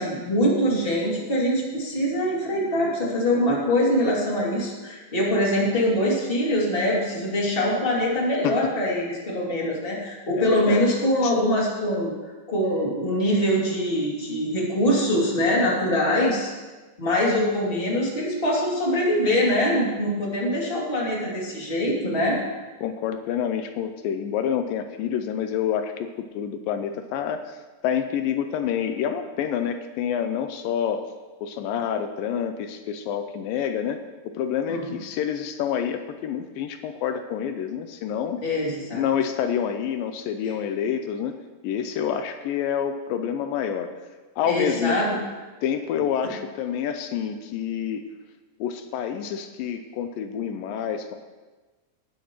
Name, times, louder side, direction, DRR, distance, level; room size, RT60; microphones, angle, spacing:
voice 1, 0.0-12.1 12.5-16.5 17.0-22.4 34.7-35.0 38.4-39.0 44.4-45.1, equal, 15° left, -4 dB, 2.4 m, -23 dB
voice 2, 10.4-10.8 11.2-11.3 22.8-31.1 31.4-38.4 38.9-41.3 41.6-43.9 44.4-45.0 45.6-48.1 48.6-51.2, left 8 dB, 85° left, 7 dB, 2.3 m, -28 dB
19.0 x 10.5 x 3.1 m, 1.2 s
omnidirectional pair, 4.1 m